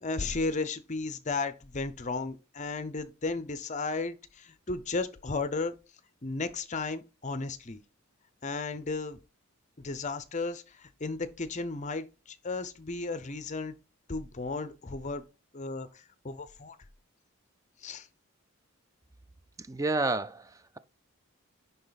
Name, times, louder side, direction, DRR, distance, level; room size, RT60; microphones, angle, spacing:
voice 1, 0.0-5.7 6.2-7.8 8.4-9.2 9.8-13.7 14.1-15.2 15.5-16.8 17.8-18.1, left 3 dB, 35° left, 0.7 m, -34 dB
voice 2, 19.6-20.8, right 3 dB, 15° right, 0.4 m, -30 dB
10.5 x 4.0 x 4.1 m
head